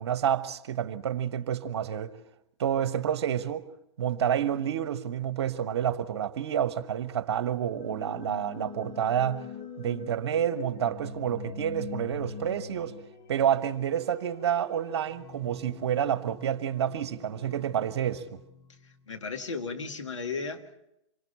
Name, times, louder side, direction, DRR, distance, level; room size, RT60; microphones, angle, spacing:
voice 1, 0.0-2.1 2.6-3.7 4.0-9.4 9.8-12.9 13.3-18.4, right 9 dB, 60° right, 1.2 m, -29 dB
sound 1, 7.4-19.3, left 5 dB, 35° left, 1.6 m, -44 dB
voice 2, 18.8-20.9, left 4 dB, 75° left, 2.1 m, -35 dB
27.5 x 24.0 x 4.2 m
figure-of-eight pair, 110°, 16 cm